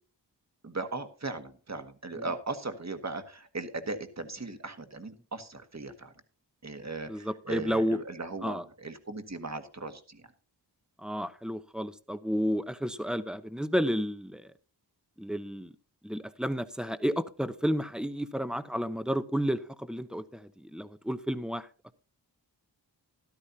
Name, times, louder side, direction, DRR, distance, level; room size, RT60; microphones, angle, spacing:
voice 1, 0.6-6.1 6.6-10.3, right 3 dB, 40° right, 8 dB, 1.7 m, -38 dB
voice 2, 7.1-8.0 8.4-8.6 11.0-14.5 15.2-15.7 16.0-21.7, equal, ahead, 13 dB, 0.9 m, -31 dB
13.5 x 12.0 x 2.8 m, 0.36 s
cardioid pair, 50°, 43 cm